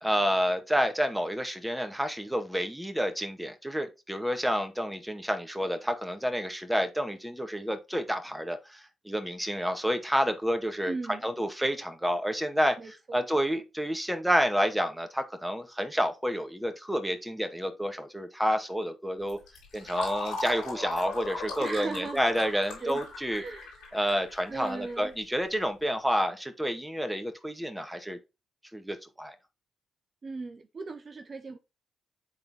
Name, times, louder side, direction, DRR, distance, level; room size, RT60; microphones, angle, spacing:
voice 1, 0.0-10.9 11.2-19.4 19.7-23.4 23.9-28.2 28.7-29.4, equal, 5° right, 1.9 m, -29 dB
voice 2, 10.9-11.3 12.8-13.2 21.6-22.2 22.8-23.0 23.4-25.1 30.2-31.6, right 4 dB, 45° right, 0.9 m, -38 dB
Fill (with liquid), 19.2-25.6, left 3 dB, 90° left, 3.5 m, -39 dB
8.8 x 3.9 x 3.6 m
supercardioid pair, 50°, 0 cm